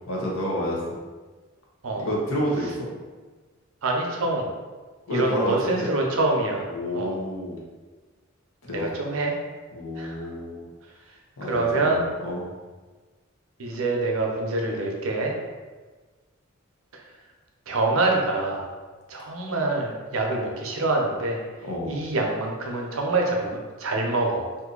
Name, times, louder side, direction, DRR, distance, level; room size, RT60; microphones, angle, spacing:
voice 1, 0.1-0.8 2.0-2.9 5.1-5.9 6.7-7.6 8.6-8.9 9.7-10.7 11.4-12.5 21.6-22.0, equal, 80° left, -3 dB, 0.9 m, -29 dB
voice 2, 3.8-4.5 5.1-6.7 6.9-7.2 8.7-9.4 10.0-10.2 11.5-12.0 13.6-15.3 17.7-18.7 19.1-21.4 21.9-24.5, right 2 dB, 80° right, 1 dB, 0.6 m, -25 dB
2.7 x 2.6 x 3.7 m, 1.3 s
head